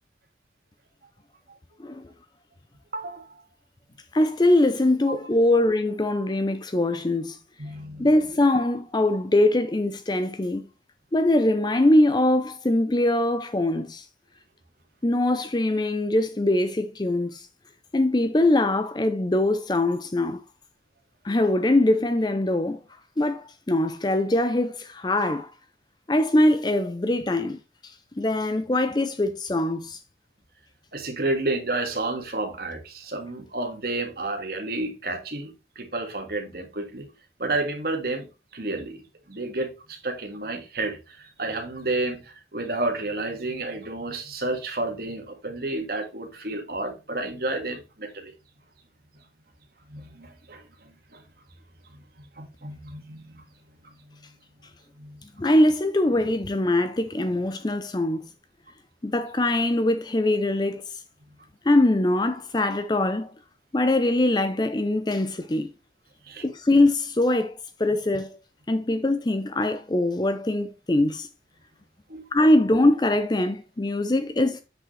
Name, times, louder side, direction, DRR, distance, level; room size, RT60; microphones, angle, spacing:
voice 1, 2.9-3.3 5.1-5.2 5.5-5.6 7.6-8.1 30.9-37.1 37.4-38.3 38.5-48.3 49.9-51.2 51.9-53.4 54.1-54.2 55.0-55.2 66.3-66.4 72.1-72.3, right 2 dB, 55° right, 1.8 m, -31 dB
voice 2, 4.1-7.4 8.0-10.6 11.1-14.1 15.0-17.5 17.9-20.4 21.2-22.8 23.2-25.5 26.1-30.0 55.4-58.2 59.0-61.0 61.6-63.3 63.7-65.7 66.4-67.5 67.8-68.4 68.7-71.3 72.3-74.6, left 1 dB, 25° left, 0.5 m, -22 dB
7.6 x 6.4 x 3.2 m
head